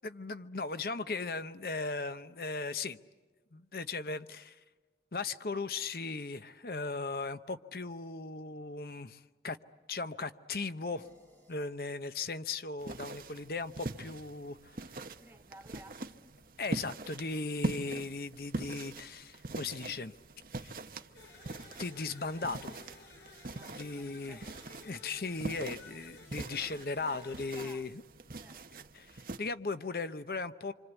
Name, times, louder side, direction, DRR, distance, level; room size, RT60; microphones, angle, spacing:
voice 1, 0.0-3.0 3.5-4.6 5.1-9.6 9.9-11.1 11.5-15.0 16.6-20.1 20.5-20.8 21.8-22.8 23.7-24.4 24.8-28.0 28.9-30.7, left 3 dB, 55° left, 0.8 m, -37 dB
sound 1, 11.0-15.7, equal, 10° left, 7.9 m, -68 dB
sound 2, 12.8-29.4, right 2 dB, 50° right, 0.9 m, -43 dB
voice 2, 15.2-16.3 23.5-24.6 27.0-28.0 28.4-28.9, right 1 dB, 10° right, 1.6 m, -56 dB
sound 3, 21.1-27.6, left 3 dB, 80° left, 3.2 m, -55 dB
27.5 x 25.5 x 8.1 m
head